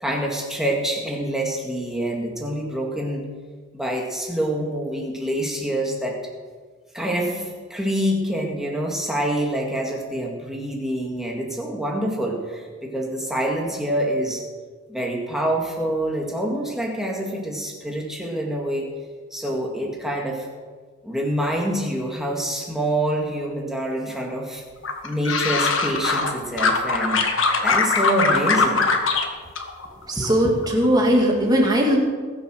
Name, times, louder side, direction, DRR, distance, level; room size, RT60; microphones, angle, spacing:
voice 1, 0.0-3.3 3.7-6.2 6.9-14.4 14.9-18.9 19.3-20.5 21.0-24.6 25.0-27.2 27.6-28.9, right 1 dB, ahead, -1 dB, 2.1 m, -26 dB
sound 1, 24.8-26.3 26.6-29.3 29.6-30.3 30.6-31.1, left 4 dB, 75° left, 1.6 m, -21 dB
voice 2, 30.1-32.0, equal, 20° right, 0 dB, 2.5 m, -19 dB
20.5 x 7.0 x 6.4 m, 1.5 s
head